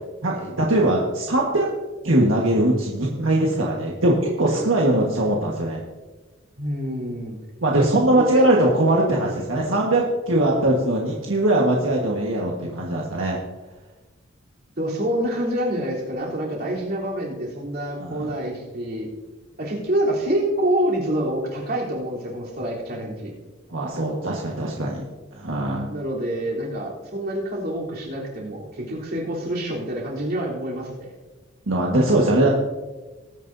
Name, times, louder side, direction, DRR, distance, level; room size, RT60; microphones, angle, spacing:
voice 1, 0.2-1.7 2.0-5.8 7.6-13.4 18.0-18.3 23.7-25.1 25.3-25.9 31.7-32.5, right 1 dB, 80° right, -2 dB, 1.5 m, -21 dB
voice 2, 6.6-7.4 8.2-8.6 14.8-19.1 19.6-23.3 25.9-31.2, right 1 dB, 55° right, -5 dB, 3.5 m, -27 dB
19.5 x 9.3 x 2.7 m, 1.2 s
head